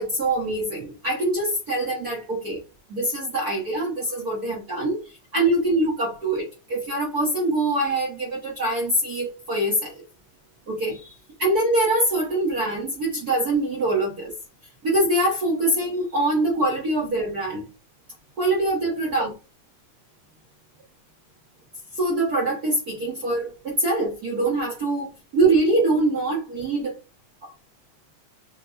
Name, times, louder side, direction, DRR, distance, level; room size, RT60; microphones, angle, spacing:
voice 1, 0.0-2.6 2.9-5.0 5.3-10.0 10.7-11.1 11.4-14.3 14.8-17.6 18.4-19.3 22.0-26.9 27.4-27.5, right 2 dB, 60° right, 0.9 m, -24 dB
5.8 x 2.2 x 4.0 m
omnidirectional pair, 3.5 m